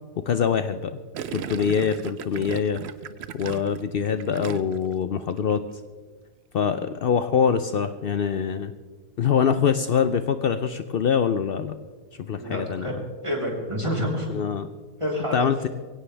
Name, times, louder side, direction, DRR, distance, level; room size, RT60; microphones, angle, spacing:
voice 1, 0.3-1.0 1.3-2.8 3.3-5.6 6.5-8.7 9.2-11.7 12.2-13.0 14.3-14.7 15.3-15.7, left 7 dB, 85° left, 10 dB, 0.5 m, -24 dB
Gurgling, 1.1-4.9 5.2-5.6, right 8 dB, 60° right, 0.7 m, -36 dB
voice 2, 12.4-12.9 13.2-14.3 15.0-15.5, equal, 20° right, -2 dB, 3.6 m, -28 dB
23.0 x 17.0 x 3.4 m, 1.5 s
omnidirectional pair, 1.7 m